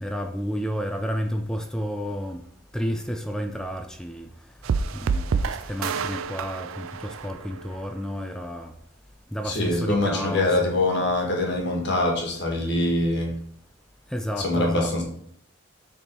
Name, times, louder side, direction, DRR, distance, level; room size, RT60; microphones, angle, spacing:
voice 1, 0.0-2.4 2.7-4.3 4.9-8.7 9.3-10.6 14.1-14.9, equal, 5° left, 0.3 m, -31 dB
sound 1, 4.6-7.9, right 5 dB, 75° right, 0.4 m, -28 dB
voice 2, 9.4-13.3 14.4-15.0, left 2 dB, 55° left, 1.4 m, -24 dB
6.6 x 3.5 x 4.4 m
head